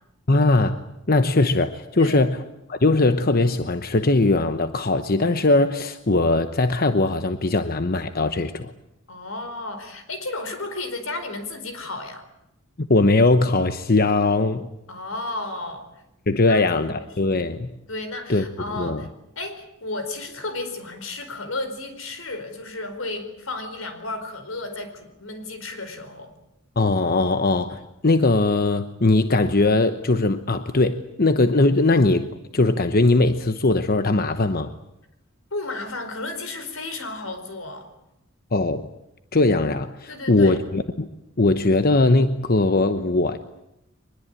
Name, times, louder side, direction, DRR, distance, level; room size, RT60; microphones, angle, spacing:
voice 1, 0.3-0.8 1.1-2.4 2.7-8.7 12.8-14.7 16.3-17.7 18.3-19.0 26.8-34.7 38.5-38.9 39.3-41.1 41.4-43.4, left 2 dB, 50° left, 10 dB, 1.0 m, -20 dB
voice 2, 9.1-12.2 14.9-15.9 16.5-16.6 16.9-17.4 17.9-19.1 19.4-26.3 35.5-37.9 40.1-40.6, left 2 dB, 85° left, 9 dB, 4.7 m, -33 dB
24.0 x 21.0 x 9.0 m, 0.83 s
head